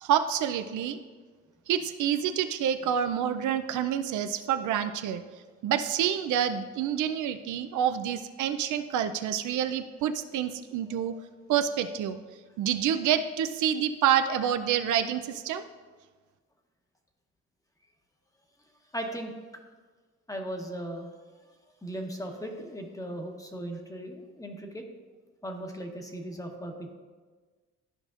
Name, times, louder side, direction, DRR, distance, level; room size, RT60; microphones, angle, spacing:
voice 1, 0.0-1.0 1.7-5.2 5.6-11.2 11.5-12.2 12.6-15.6, right 9 dB, 80° right, 8 dB, 0.5 m, -27 dB
voice 2, 18.9-19.3 20.3-21.1 21.8-24.8 25.4-26.9, right 1 dB, 10° left, 3 dB, 1.0 m, -37 dB
12.5 x 5.0 x 2.5 m, 1.4 s
cardioid pair, 90°, 30 cm